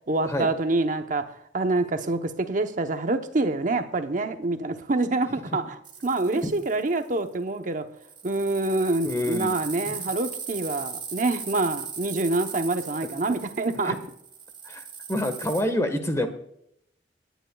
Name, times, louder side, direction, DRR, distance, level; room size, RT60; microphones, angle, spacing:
voice 1, 0.1-1.3 1.5-7.9 8.2-14.0, right 2 dB, 45° right, 0.9 m, -26 dB
sound 1, 5.8-7.0 8.0-15.6, right 6 dB, 25° right, 2.2 m, -38 dB
voice 2, 9.0-9.5 9.9-10.0 13.3-13.4 13.8-14.0 14.6-14.8 15.1-16.3, left 1 dB, 15° left, 1.4 m, -27 dB
29.0 x 10.0 x 2.3 m
head